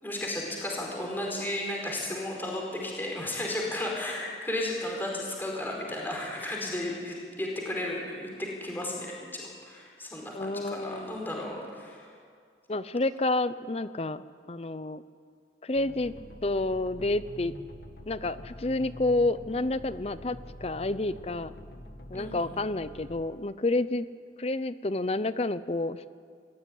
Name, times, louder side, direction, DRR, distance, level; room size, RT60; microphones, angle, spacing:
voice 1, 0.0-12.1 22.1-22.3, left 1 dB, 10° left, -2 dB, 4.6 m, -34 dB
voice 2, 10.3-11.3 12.7-15.0 15.6-16.1 16.4-17.5 18.1-21.5 22.1-24.1 24.4-26.1, left 2 dB, 35° left, 14 dB, 0.6 m, -29 dB
sound 1, 15.7-23.2, left 1 dB, 60° left, 1.9 m, -46 dB
26.0 x 15.5 x 10.0 m, 2.1 s
head